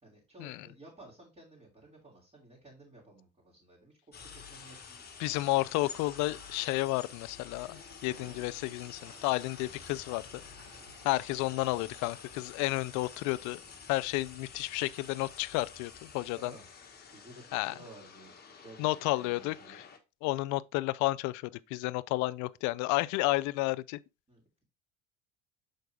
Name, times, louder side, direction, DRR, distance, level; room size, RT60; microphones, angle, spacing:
voice 1, 0.0-4.0 4.2-6.0 16.3-16.7 17.1-19.8 24.3-24.6, right 1 dB, 20° right, 3.2 m, -55 dB
sound 1, 4.1-20.0, left 6 dB, 30° left, 1.5 m, -50 dB
voice 2, 5.2-10.2 11.0-13.6 13.9-16.5 17.5-17.7 18.8-19.8 20.2-24.0, left 19 dB, 65° left, 0.5 m, -31 dB
sound 2, 7.5-12.4, right 6 dB, 50° right, 1.5 m, -59 dB
6.5 x 4.5 x 3.5 m
supercardioid pair, 95°, 31 cm